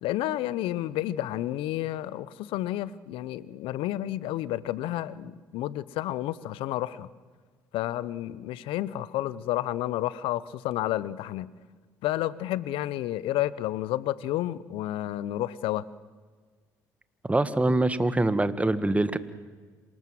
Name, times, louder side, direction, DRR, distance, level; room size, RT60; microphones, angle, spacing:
voice 1, 0.0-7.1 7.7-11.5 12.0-15.8, left 14 dB, 75° left, 19 dB, 0.9 m, -30 dB
voice 2, 17.2-19.2, right 2 dB, 15° right, 13 dB, 1.8 m, -24 dB
27.0 x 19.5 x 7.7 m, 1.5 s
hypercardioid pair, 55°, 9 cm